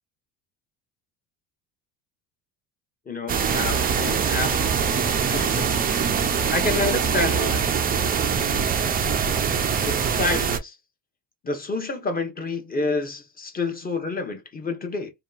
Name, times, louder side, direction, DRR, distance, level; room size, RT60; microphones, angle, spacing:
voice 1, 3.1-4.5 5.2-5.6 6.5-7.7 9.8-10.8 11.4-15.1, left 3 dB, 20° left, 0.9 m, -28 dB
sound 1, 3.3-10.6, right 6 dB, 20° right, 0.4 m, -23 dB
2.7 x 2.3 x 2.4 m
supercardioid pair, 90°, 43 cm